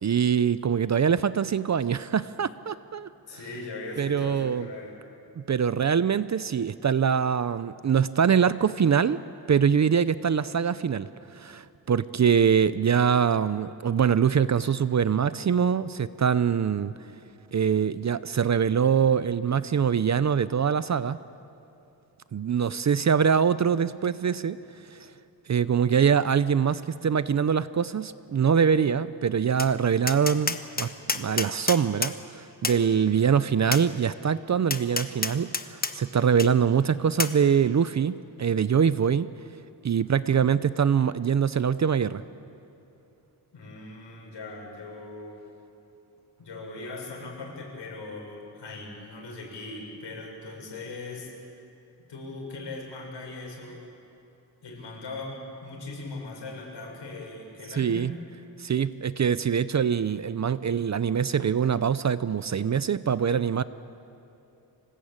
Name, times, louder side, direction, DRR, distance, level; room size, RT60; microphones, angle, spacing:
voice 1, 0.0-3.1 4.0-4.7 5.4-9.2 9.5-16.9 17.5-21.2 22.3-24.6 24.9-25.1 25.5-39.3 39.8-42.2 57.7-58.1 58.6-63.6, right 7 dB, 40° right, 15 dB, 0.5 m, -24 dB
voice 2, 3.3-5.0 43.5-45.4 46.4-51.3 52.1-53.8 54.6-58.2, left 2 dB, 80° left, 0 dB, 6.3 m, -39 dB
Tap, 29.6-29.7 30.1-32.2 32.6-32.8 33.7-33.9 34.7-35.9 36.4-36.5 37.2-37.4, left 3 dB, 20° left, 1.1 m, -28 dB
25.5 x 19.5 x 8.8 m, 2.8 s
wide cardioid pair, 130°, 42 cm